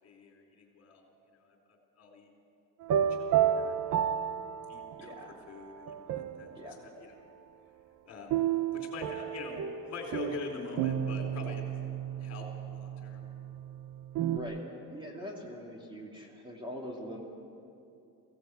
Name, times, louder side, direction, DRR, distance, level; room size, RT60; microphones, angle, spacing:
voice 1, 0.0-1.6 2.0-2.3 3.1-3.9 4.7-5.2 5.5-7.1 8.0-8.4 8.7-11.9 12.2-13.2, left 4 dB, 45° left, 2 dB, 4.0 m, -44 dB
sound 1, 2.8-5.2 5.8-6.7 8.3-14.4, right 9 dB, 50° right, 1.0 m, -32 dB
voice 2, 5.0-5.5 6.5-6.8 14.3-14.6 14.9-17.2, equal, 15° right, -1 dB, 2.7 m, -42 dB
23.5 x 17.0 x 8.1 m, 2.6 s
cardioid pair, 150°, 37 cm